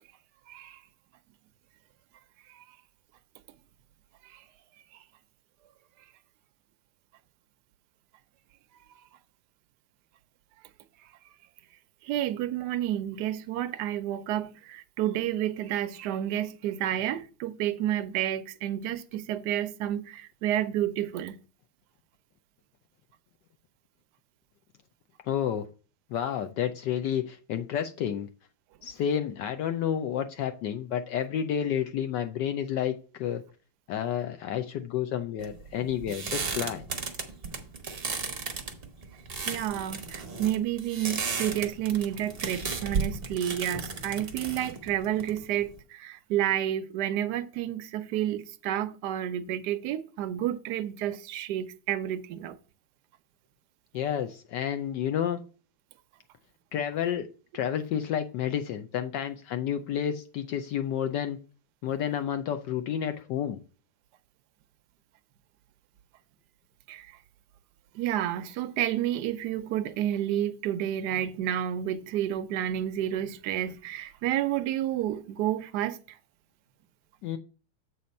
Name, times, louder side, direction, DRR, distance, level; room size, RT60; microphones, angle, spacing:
voice 1, 0.5-0.8 4.3-4.4 12.0-21.4 39.5-52.6 66.9-67.1 67.9-76.0, right 11 dB, 70° right, 1.0 m, -30 dB
voice 2, 25.3-25.7 26.1-28.3 28.8-33.4 33.9-36.9 53.9-55.4 56.7-57.3 57.5-61.4 61.8-63.6 77.2-77.4, left 9 dB, 70° left, 1.0 m, -30 dB
sound 1, 35.4-45.8, right 4 dB, 45° right, 0.7 m, -35 dB
7.9 x 4.2 x 5.3 m
omnidirectional pair, 2.3 m